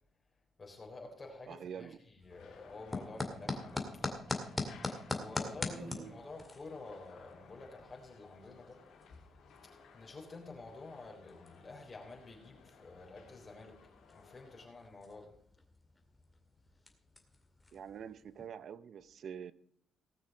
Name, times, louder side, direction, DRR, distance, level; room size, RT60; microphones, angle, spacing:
voice 1, 0.6-4.1 5.1-8.8 9.6-13.8 14.1-15.4, left 3 dB, 30° left, 3.7 m, -50 dB
voice 2, 1.5-2.0 5.7-6.1 17.7-19.5, right 8 dB, 60° right, 0.7 m, -46 dB
sound 1, 2.2-18.5, left 2 dB, 15° left, 2.2 m, -44 dB
sound 2, 2.3-14.7, left 5 dB, 80° left, 2.8 m, -60 dB
18.5 x 6.3 x 5.3 m
cardioid pair, 90°, 0 cm